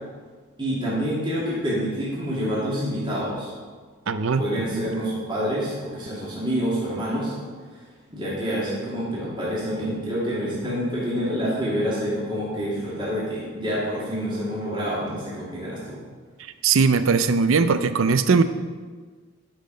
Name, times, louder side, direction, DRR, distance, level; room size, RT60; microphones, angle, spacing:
voice 1, 0.6-3.5 4.3-7.3 7.7-7.8 8.1-16.0, equal, 20° right, -7 dB, 2.2 m, -27 dB
voice 2, 4.1-4.9 16.6-18.4, right 5 dB, 70° right, 12 dB, 0.5 m, -20 dB
10.5 x 5.7 x 5.0 m, 1.5 s
head